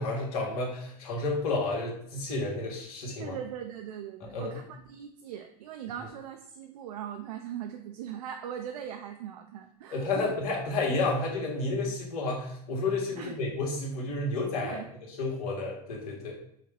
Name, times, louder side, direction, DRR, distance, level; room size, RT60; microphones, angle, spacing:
voice 1, 0.0-3.4 4.2-4.6 9.9-14.8 15.1-16.4, left 3 dB, 70° left, -1 dB, 1.5 m, -31 dB
voice 2, 3.2-10.3 13.2-13.3 14.6-14.9, right 9 dB, 80° right, 4 dB, 0.4 m, -40 dB
4.6 x 2.3 x 3.4 m, 0.72 s
hypercardioid pair, 90°, 19 cm